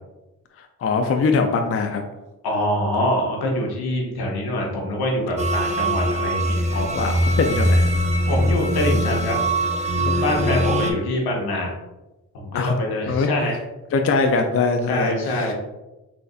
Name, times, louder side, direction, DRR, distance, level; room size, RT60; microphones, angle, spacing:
voice 1, 0.6-2.0 6.7-7.9 10.3-10.9 12.5-12.8 13.1-13.3 13.9-15.5, left 4 dB, 40° left, 5 dB, 0.4 m, -22 dB
voice 2, 2.4-6.8 8.3-9.4 10.0-11.7 12.3-13.6 14.9-15.5, left 1 dB, 70° left, -1 dB, 1.0 m, -24 dB
sound 1, 5.4-10.9, right 1 dB, 20° right, 0.5 m, -21 dB
4.1 x 2.5 x 2.4 m, 1.0 s
supercardioid pair, 45°, 39 cm